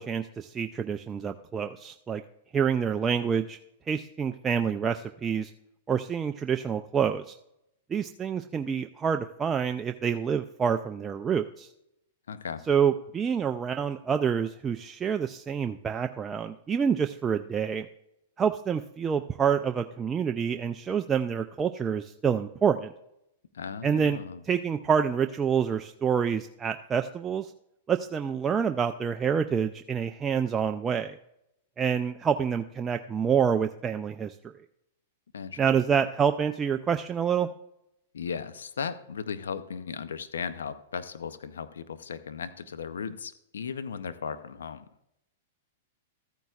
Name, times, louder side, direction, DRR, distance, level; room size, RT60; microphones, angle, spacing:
voice 1, 0.0-2.2 2.5-3.6 3.9-5.5 5.9-7.4 7.9-11.7 12.7-17.9 18.4-22.9 23.8-24.2 24.4-27.5 27.9-31.2 31.8-34.3 35.6-37.5, right 7 dB, 20° right, 7 dB, 0.4 m, -27 dB
voice 2, 12.3-12.6 23.5-24.4 35.3-35.7 38.1-44.8, left 6 dB, 85° left, 12 dB, 0.6 m, -36 dB
14.0 x 9.1 x 2.4 m, 0.81 s
hypercardioid pair, 120°, 0 cm